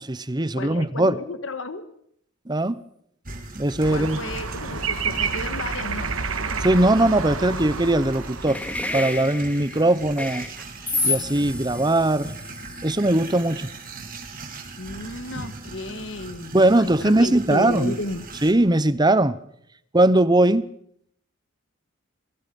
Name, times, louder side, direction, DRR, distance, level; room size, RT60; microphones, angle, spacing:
voice 1, 0.0-1.2 2.5-2.8 3.5-4.2 6.6-8.6 8.9-10.5 11.0-12.3 12.8-13.7 16.5-17.9 18.4-19.4 19.9-20.6, right 1 dB, 20° right, 16 dB, 1.0 m, -20 dB
voice 2, 0.5-1.9 3.9-6.2 14.8-18.3, left 2 dB, 65° left, 10 dB, 1.7 m, -33 dB
sound 1, 3.2-18.5, right 3 dB, 45° right, 3.4 m, -40 dB
sound 2, 3.8-8.8, right 5 dB, 90° right, 1.8 m, -29 dB
sound 3, 8.5-13.8, left 2 dB, 5° left, 2.2 m, -30 dB
27.5 x 22.5 x 5.4 m, 0.71 s
head